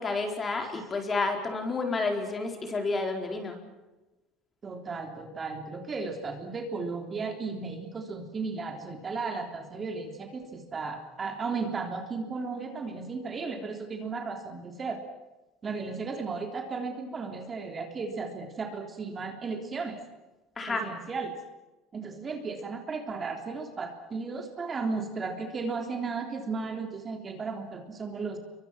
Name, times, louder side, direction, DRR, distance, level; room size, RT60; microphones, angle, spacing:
voice 1, 0.0-3.6 20.6-20.8, left 3 dB, 20° left, 4 dB, 4.5 m, -30 dB
voice 2, 4.6-15.0 15.6-20.0 20.7-21.4 21.9-28.4, right 4 dB, 25° right, 4 dB, 3.5 m, -35 dB
28.0 x 24.0 x 6.1 m, 1.1 s
cardioid pair, 140°, 0 cm